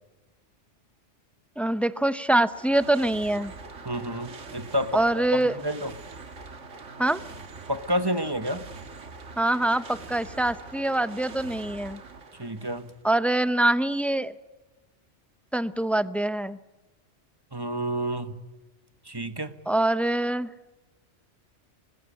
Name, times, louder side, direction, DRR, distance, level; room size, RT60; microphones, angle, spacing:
voice 1, 1.6-3.5 4.9-5.6 7.0-7.2 9.4-12.0 13.0-14.3 15.5-16.6 19.7-20.5, right 1 dB, ahead, 13 dB, 0.5 m, -24 dB
sound 1, 2.2-13.1, right 4 dB, 85° right, 2.0 m, -43 dB
voice 2, 3.8-5.2 5.5-5.9 7.7-8.6 12.4-12.9 17.5-18.3 19.0-19.5, equal, 20° right, 10 dB, 1.3 m, -29 dB
25.0 x 21.0 x 8.5 m, 1.1 s
omnidirectional pair, 1.2 m